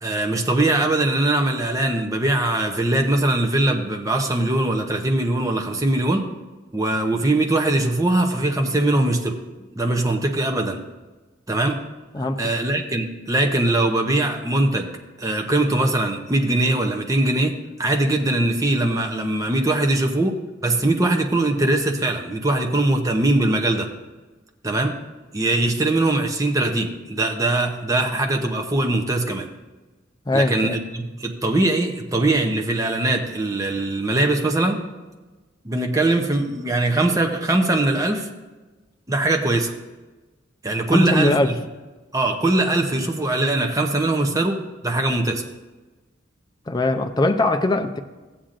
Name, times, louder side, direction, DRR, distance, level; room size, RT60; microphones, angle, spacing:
voice 1, 0.0-6.3 6.7-9.4 9.8-10.8 11.5-11.8 12.2-14.9 15.2-23.9 24.6-25.0 25.3-29.5 30.3-34.8 35.6-38.3 39.1-39.7 40.6-41.6 42.1-45.4, right 2 dB, 15° right, 4 dB, 0.7 m, -21 dB
voice 2, 30.3-30.8 40.9-41.5 46.7-48.0, left 2 dB, 20° left, 5 dB, 0.5 m, -21 dB
14.5 x 8.7 x 2.5 m, 1.2 s
head